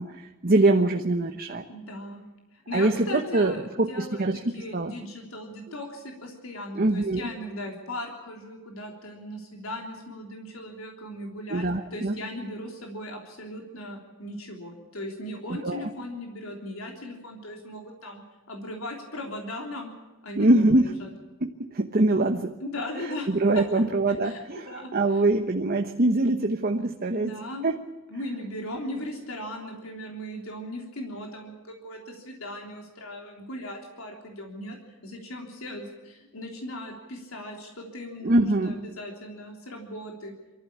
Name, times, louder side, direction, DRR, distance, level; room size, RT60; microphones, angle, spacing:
voice 1, 0.0-1.6 2.7-4.4 4.7-4.9 6.7-7.3 11.5-12.2 15.5-15.9 20.4-20.9 21.4-22.5 23.3-27.3 27.6-27.7 38.2-38.7, right 2 dB, 45° right, 5 dB, 1.1 m, -23 dB
voice 2, 1.7-11.7 11.9-18.2 18.5-19.9 20.2-21.1 22.6-23.3 23.5-23.8 24.2-25.2 27.1-27.8 28.1-34.8 35.0-40.3, left 1 dB, 85° left, 2 dB, 3.4 m, -38 dB
24.5 x 14.5 x 8.6 m, 1.2 s
head